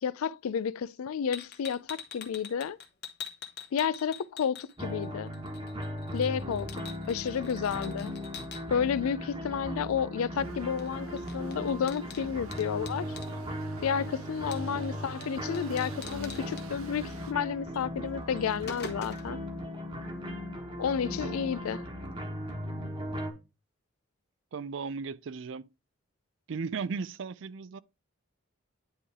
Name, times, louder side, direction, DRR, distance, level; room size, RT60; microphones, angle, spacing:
voice 1, 0.0-2.8 3.7-5.3 6.1-6.8 7.1-8.1 8.7-13.1 13.8-19.4 20.8-21.9, left 7 dB, 85° left, 0.4 m, -31 dB
sound 1, 1.3-5.1 5.3-8.6 10.8-10.9 11.2-13.3 14.5-14.9 15.2-15.3 15.5-16.6 17.7-17.9 18.2-19.4, left 6 dB, 50° left, 1.0 m, -44 dB
sound 2, 4.8-23.3, equal, 25° right, 1.2 m, -38 dB
sound 3, 10.3-17.3, right 3 dB, 85° right, 0.9 m, -48 dB
voice 2, 24.5-25.7 26.5-27.8, right 5 dB, 60° right, 0.4 m, -36 dB
9.8 x 3.3 x 3.5 m
head